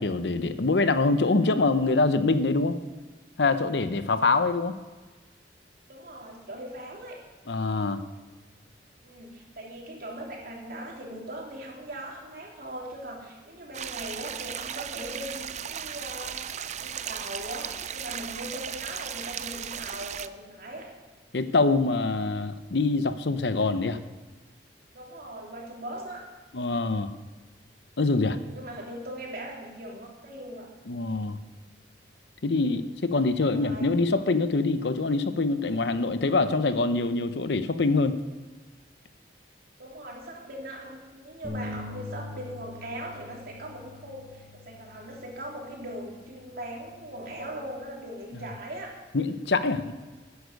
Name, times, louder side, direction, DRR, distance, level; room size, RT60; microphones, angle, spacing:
voice 1, 0.0-2.8 3.4-4.7 7.5-8.0 21.3-24.0 26.5-27.1 28.0-28.4 30.9-31.4 32.4-38.2 49.1-49.9, left 3 dB, 70° left, 11 dB, 0.8 m, -24 dB
voice 2, 5.9-7.2 9.0-16.5 16.8-20.9 24.9-26.2 28.1-30.7 32.5-32.8 33.4-34.2 39.8-49.0, right 1 dB, 55° right, -2 dB, 3.1 m, -40 dB
sound 1, 13.7-20.3, right 9 dB, 40° right, 0.5 m, -36 dB
sound 2, 41.4-47.7, left 2 dB, 25° left, 2.5 m, -43 dB
13.0 x 9.6 x 5.3 m, 1.3 s
head